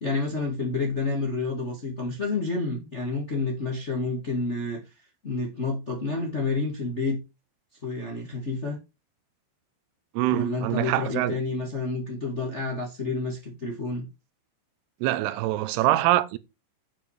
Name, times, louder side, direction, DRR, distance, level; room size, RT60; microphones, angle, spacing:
voice 1, 0.0-4.8 5.2-7.2 7.8-8.8 10.3-14.1, left 3 dB, 35° left, 1.1 m, -29 dB
voice 2, 10.1-11.4 15.0-16.4, right 15 dB, 80° right, 2.6 m, -24 dB
8.9 x 5.0 x 4.9 m
omnidirectional pair, 4.9 m